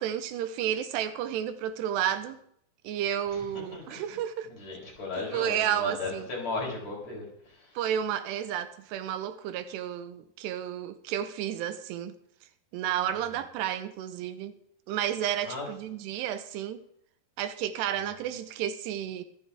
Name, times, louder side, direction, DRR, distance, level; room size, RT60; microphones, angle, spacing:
voice 1, 0.0-2.4 2.8-4.5 5.3-6.3 7.8-12.2 12.7-14.5 14.9-16.8 17.4-19.2, right 10 dB, 85° right, 3.0 m, -31 dB
voice 2, 3.3-4.2 4.5-7.8 15.4-15.7 18.0-18.1, left 3 dB, 40° left, 5.2 m, -37 dB
25.0 x 8.5 x 3.6 m
omnidirectional pair, 4.8 m